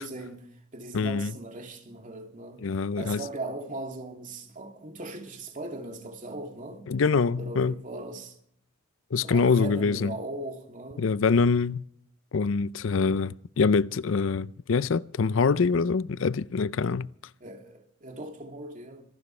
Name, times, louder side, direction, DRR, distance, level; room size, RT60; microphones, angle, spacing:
voice 1, 0.0-2.7 3.0-6.9 7.4-8.4 9.2-11.0 17.4-19.1, right 2 dB, 40° right, 2.6 m, -39 dB
voice 2, 0.9-1.3 2.6-3.2 6.9-7.8 9.1-10.1 11.0-11.8 12.3-17.1, left 5 dB, 70° left, 0.5 m, -24 dB
26.0 x 12.0 x 3.2 m
head